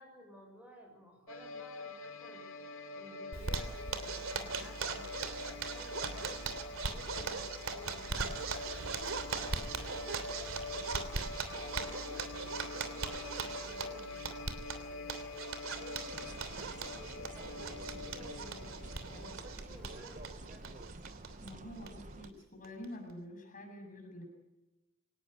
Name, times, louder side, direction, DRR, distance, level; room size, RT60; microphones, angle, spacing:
voice 1, 0.0-2.7 2.9-11.0 11.5-14.4 14.8-15.1 15.7-18.7 19.1-20.6, equal, 5° right, 2 dB, 6.5 m, -55 dB
sound 1, 1.3-19.3, left 3 dB, 70° left, 2.4 m, -46 dB
Zipper (clothing), 3.3-21.5 21.8-21.9 22.2-22.3 22.6-23.1, right 4 dB, 70° right, 3.1 m, -40 dB
sound 2, 16.1-22.3, right 2 dB, 35° right, 0.9 m, -49 dB
voice 2, 21.4-24.2, left 1 dB, 40° left, 2 dB, 7.6 m, -47 dB
25.0 x 19.0 x 8.1 m, 1.0 s
head